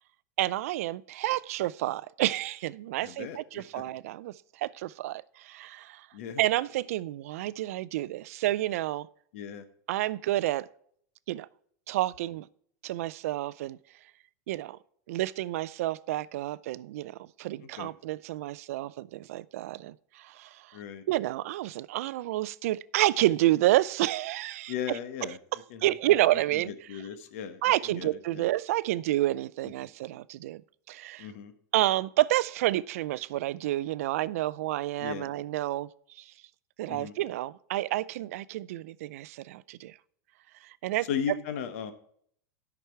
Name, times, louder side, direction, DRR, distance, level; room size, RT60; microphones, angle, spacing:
voice 1, 0.4-6.1 6.4-9.1 9.9-10.7 11.3-11.5 11.9-12.5 12.8-13.8 14.5-14.8 15.1-20.8 21.1-27.0 27.6-30.6 30.9-31.3 31.7-35.9 36.2-36.3 36.8-39.9 40.6-41.1, right 15 dB, 60° right, 0.4 m, -29 dB
voice 2, 3.0-3.8 6.1-6.4 9.3-9.6 17.8-17.9 20.7-21.0 24.7-25.4 25.7-25.8 26.6-28.5 31.2-31.5 35.0-35.3 36.9-37.1 41.1-41.9, left 8 dB, 55° left, 1.1 m, -36 dB
12.5 x 6.0 x 4.5 m
supercardioid pair, 175°, 9 cm